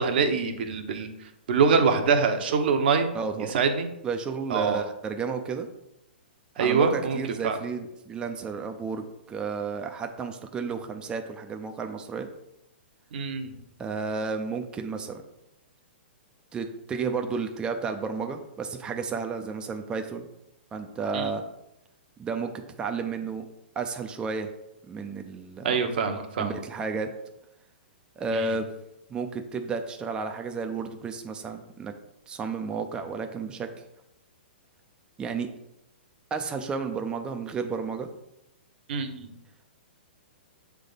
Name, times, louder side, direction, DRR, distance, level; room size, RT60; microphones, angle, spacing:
voice 1, 0.0-3.1 3.5-3.9 4.5-4.8 6.6-7.6 13.1-13.5 21.1-21.3 25.6-26.6 28.3-28.5 38.9-39.3, right 5 dB, 60° right, 6 dB, 0.9 m, -25 dB
voice 2, 3.1-3.6 4.0-5.7 6.6-12.3 13.8-15.2 16.5-20.3 20.7-21.4 22.2-23.4 23.8-24.5 24.9-25.8 26.4-27.1 28.2-28.7 29.1-31.9 32.3-33.7 35.2-35.5 36.3-38.1, right 5 dB, 15° right, 5 dB, 0.5 m, -32 dB
7.2 x 3.5 x 4.0 m, 0.87 s
hypercardioid pair, 140°, 6 cm